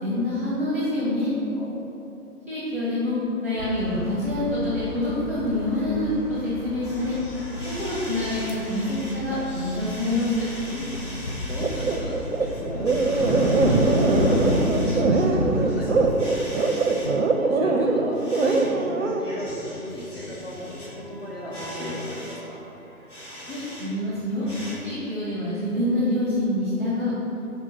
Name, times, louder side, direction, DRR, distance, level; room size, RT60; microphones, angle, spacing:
voice 1, 0.0-1.3 2.5-3.1 3.4-6.1 6.4-7.2 7.8-10.4 23.5-24.4 24.8-27.1, left 1 dB, 10° right, -8 dB, 0.7 m, -26 dB
voice 2, 1.3-1.8 10.7-16.8 17.5-22.6, equal, 40° left, -3 dB, 0.8 m, -36 dB
sound 1, 3.6-16.1, left 1 dB, 80° left, 1.5 m, -29 dB
sound 2, 6.8-23.8 24.1-24.7, equal, 10° left, 1.4 m, -40 dB
sound 3, 11.6-19.2, right 3 dB, 50° right, 0.5 m, -22 dB
4.5 x 4.5 x 5.5 m, 2.9 s
figure-of-eight pair, 145°, 46 cm